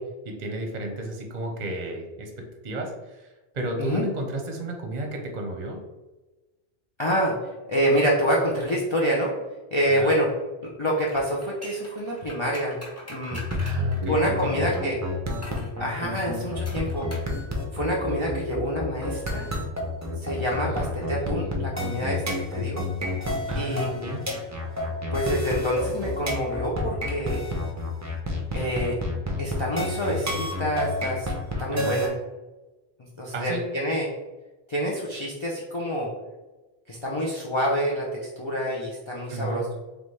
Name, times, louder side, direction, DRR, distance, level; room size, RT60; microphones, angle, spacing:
voice 1, 0.2-5.8 9.9-10.1 13.6-14.7 20.6-20.9 23.5-24.2 31.7-32.0 33.3-33.6 39.3-39.7, right 1 dB, 45° right, 2 dB, 0.8 m, -33 dB
voice 2, 7.0-7.3 7.7-9.3 9.7-10.3 10.6-12.8 13.1-13.4 14.1-15.0 15.8-17.1 17.7-19.5 20.2-22.9 23.5-23.9 25.1-27.4 28.5-29.0 29.4-31.3 31.6-32.1 33.2-34.1 34.7-36.1 36.9-39.7, equal, 35° left, -5 dB, 0.6 m, -27 dB
sound 1, 11.1-14.8 15.4-15.7 16.7-17.3 17.6-17.7, left 1 dB, 15° left, 1.0 m, -43 dB
sound 2, 13.3-32.1, left 1 dB, 20° right, 0.5 m, -29 dB
4.0 x 3.4 x 3.2 m, 1.1 s
omnidirectional pair, 1.1 m